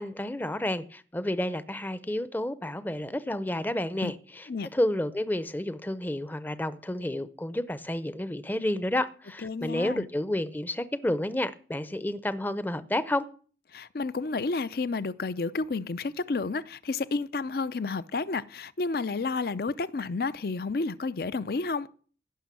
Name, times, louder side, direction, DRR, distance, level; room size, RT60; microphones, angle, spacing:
voice 1, 0.0-13.3, left 1 dB, 10° left, 0.6 m, -30 dB
voice 2, 9.4-10.1 13.7-21.9, left 3 dB, 55° left, 0.5 m, -31 dB
16.0 x 6.2 x 7.5 m
head